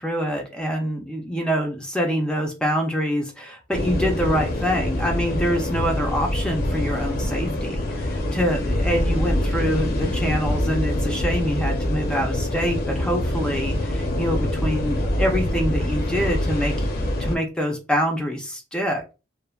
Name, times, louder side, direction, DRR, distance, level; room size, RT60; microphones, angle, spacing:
voice 1, 0.0-19.1, equal, 5° left, 2 dB, 0.4 m, -25 dB
sound 1, 3.7-17.4, left 1 dB, 50° left, 0.6 m, -25 dB
3.2 x 2.1 x 2.3 m, 0.30 s
head